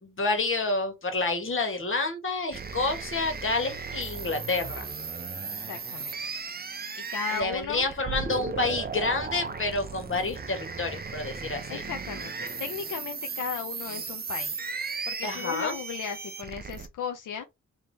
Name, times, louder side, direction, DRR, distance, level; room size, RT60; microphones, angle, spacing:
voice 1, 0.0-4.9 7.3-11.8 15.2-15.7, left 3 dB, 40° left, 1.6 m, -29 dB
sound 1, 2.5-16.9, right 5 dB, 30° right, 0.6 m, -36 dB
voice 2, 5.7-6.2 6.9-7.9 8.6-8.7 11.7-14.7 15.1-17.4, left 8 dB, 80° left, 0.6 m, -36 dB
3.5 x 2.9 x 4.0 m
cardioid pair, 85°, 30 cm